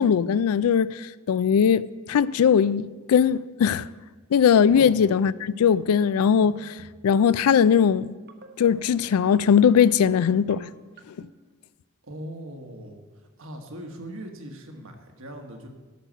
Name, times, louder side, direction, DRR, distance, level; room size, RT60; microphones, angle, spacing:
voice 1, 0.0-3.9 4.3-6.7 7.0-8.1 8.6-10.7, left 7 dB, 90° left, 0.3 m, -20 dB
sound 1, 4.6-5.0 5.4-5.7 6.4-6.9 7.2-7.5 8.3-8.7 9.1-9.5 10.1-10.5 11.0-11.3, right 3 dB, 45° right, 0.9 m, -45 dB
voice 2, 12.0-13.0 13.4-15.7, right 1 dB, 65° right, 1.4 m, -39 dB
11.0 x 6.4 x 6.3 m
head